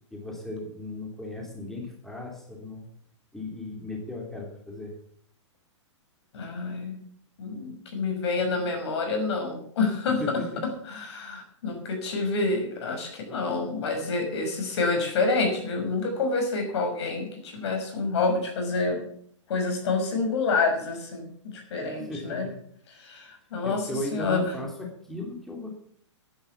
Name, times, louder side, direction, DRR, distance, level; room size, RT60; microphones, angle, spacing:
voice 1, 0.1-2.9 3.3-4.9 10.2-10.6 21.9-22.6 23.6-25.7, left 1 dB, ahead, 0 dB, 3.1 m, -36 dB
voice 2, 6.3-7.0 7.4-10.2 10.9-19.0 19.5-22.5 23.0-24.4, left 3 dB, 60° left, 4 dB, 5.9 m, -28 dB
12.0 x 10.5 x 7.2 m, 0.63 s
hypercardioid pair, 130°, 16 cm